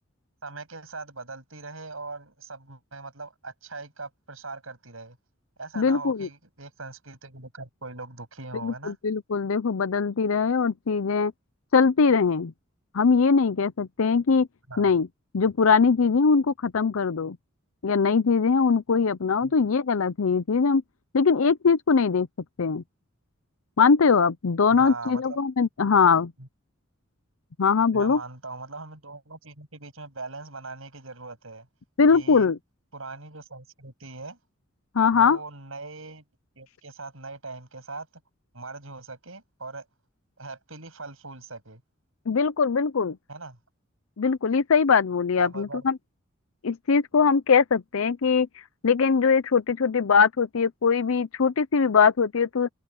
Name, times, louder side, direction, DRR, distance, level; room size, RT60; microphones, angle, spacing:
voice 1, 0.4-5.2 5.6-9.0 14.7-14.9 19.4-19.5 24.7-25.4 26.4-26.5 27.9-31.7 32.1-32.5 32.9-34.4 35.1-36.2 36.6-38.1 38.5-39.9 40.4-41.8 43.3-43.6 45.4-45.8, right 3 dB, 80° right, 7.8 m, -40 dB
voice 2, 5.8-6.3 8.6-11.3 11.7-12.5 12.9-14.5 14.8-15.1 15.3-17.4 17.8-20.8 21.1-22.3 22.6-22.8 23.8-26.3 27.6-28.2 32.0-32.6 34.9-35.4 42.3-43.2 44.2-46.0 46.6-52.7, left 5 dB, 85° left, 0.6 m, -21 dB
head